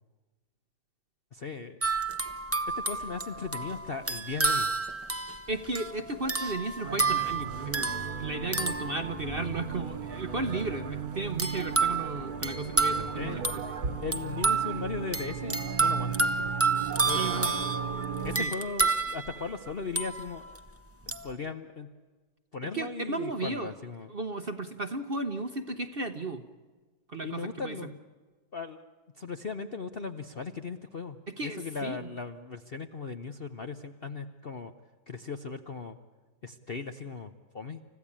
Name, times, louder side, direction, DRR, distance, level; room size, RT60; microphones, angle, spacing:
voice 1, 1.3-1.8 2.8-4.7 13.1-13.4 14.0-16.6 17.0-17.7 18.2-20.6 21.1-21.9 22.5-24.1 27.2-28.0 28.5-28.8 29.2-34.7 35.1-36.0 36.4-37.8, left 4 dB, 45° left, 7 dB, 0.8 m, -38 dB
sound 1, 1.8-9.7 11.4-20.6 21.1-21.3, right 3 dB, 10° right, 0.8 m, -30 dB
voice 2, 5.5-7.9 8.2-13.5 17.1-17.6 18.4-18.5 22.7-23.7 24.1-26.4 27.1-27.8 31.4-32.1, right 2 dB, 40° right, 9 dB, 0.9 m, -34 dB
sound 2, 6.8-18.4, right 7 dB, 60° right, 1.8 m, -36 dB
30.0 x 15.0 x 8.7 m, 1.4 s
omnidirectional pair, 1.9 m